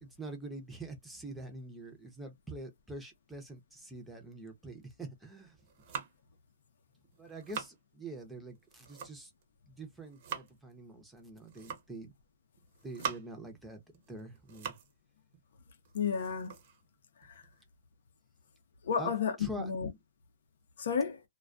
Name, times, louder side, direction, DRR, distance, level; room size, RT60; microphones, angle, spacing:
voice 1, 0.0-5.6 7.2-9.3 9.7-12.1 12.8-13.8 14.1-14.8 19.0-19.1 19.4-19.7, right 2 dB, 5° right, 0.6 m, -45 dB
sound 1, 5.5-6.3 7.0-7.8 8.5-9.4 9.8-10.5 11.4-12.0 12.6-13.5 13.9-15.0 15.3-15.4 15.8-17.6, right 6 dB, 45° right, 0.6 m, -43 dB
voice 2, 15.9-16.5 17.2-17.4 18.8-19.9 20.8-21.2, left 6 dB, 70° left, 0.6 m, -32 dB
2.3 x 2.2 x 2.4 m
hypercardioid pair, 160°, 0 cm